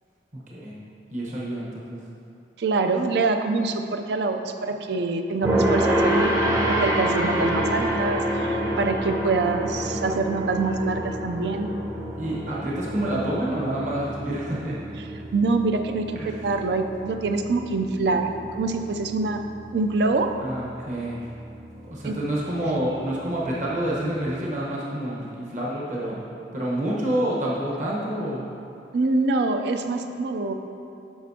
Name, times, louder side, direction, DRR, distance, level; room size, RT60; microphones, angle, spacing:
voice 1, 1.1-2.0 12.2-14.8 16.2-16.4 20.4-21.2 21.9-26.2 26.5-28.4, right 1 dB, 45° right, -6 dB, 1.1 m, -28 dB
voice 2, 2.6-6.3 6.6-11.7 15.0-15.1 15.3-18.3 18.6-19.4 19.7-20.3 22.0-22.2 28.9-30.5, right 3 dB, 65° right, 6 dB, 0.4 m, -25 dB
sound 1, 5.4-24.2, right 1 dB, 15° right, 0.6 m, -29 dB
9.3 x 6.2 x 2.8 m, 2.7 s
head